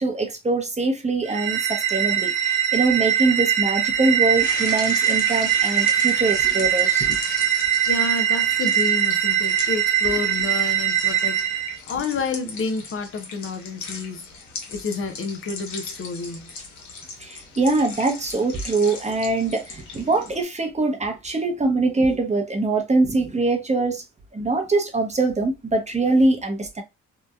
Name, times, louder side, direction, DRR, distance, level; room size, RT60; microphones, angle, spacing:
voice 1, 0.0-7.2 17.2-24.0 24.3-26.8, right 3 dB, 25° right, 0.7 m, -23 dB
sound 1, 1.2-11.8, right 10 dB, 75° right, 0.6 m, -22 dB
sound 2, 4.3-20.4, left 4 dB, 75° left, 0.9 m, -38 dB
voice 2, 7.9-11.5 11.9-14.3 14.7-16.5, left 4 dB, 45° left, 0.6 m, -29 dB
2.8 x 2.1 x 2.3 m
cardioid pair, 90°, 30 cm